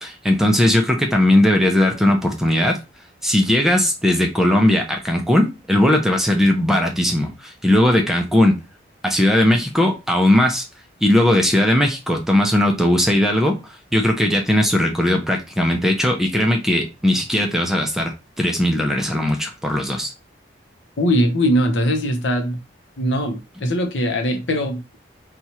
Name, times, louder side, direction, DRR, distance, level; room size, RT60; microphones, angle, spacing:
voice 1, 0.0-2.8 3.2-8.5 9.0-10.6 11.0-13.6 13.9-20.1, left 1 dB, ahead, 0.5 m, -18 dB
voice 2, 21.0-22.6 23.0-25.0, equal, 80° left, 0.8 m, -21 dB
2.9 x 2.4 x 4.2 m
head